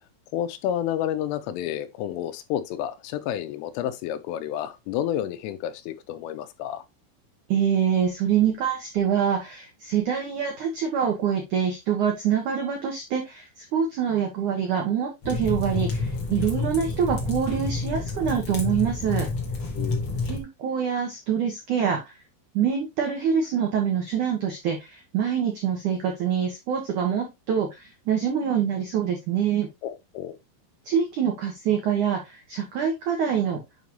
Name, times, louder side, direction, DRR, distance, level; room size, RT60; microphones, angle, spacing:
voice 1, 0.3-6.9 19.8-20.1 29.8-30.4, left 11 dB, 85° left, 3.3 m, -30 dB
voice 2, 7.5-19.3 20.2-22.1 22.5-29.7 30.8-33.6, right 8 dB, 90° right, 1.7 m, -25 dB
sound 1, 15.2-20.4, left 3 dB, 55° left, 1.5 m, -29 dB
8.5 x 5.3 x 3.1 m
omnidirectional pair, 5.8 m